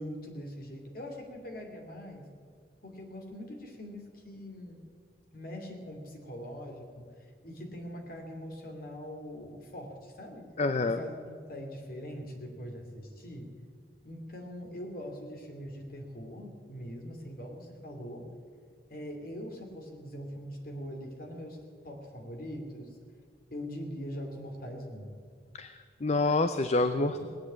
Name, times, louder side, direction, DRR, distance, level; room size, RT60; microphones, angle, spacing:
voice 1, 0.0-2.3 2.8-4.8 5.3-7.0 7.4-10.5 10.8-13.5 14.0-18.3 18.9-21.6 21.8-23.0 23.5-25.1, equal, 55° left, 2 dB, 2.8 m, -42 dB
voice 2, 10.6-11.0 25.6-25.7 26.0-27.2, left 2 dB, 40° left, 10 dB, 0.5 m, -27 dB
19.0 x 8.5 x 8.7 m, 2.1 s
head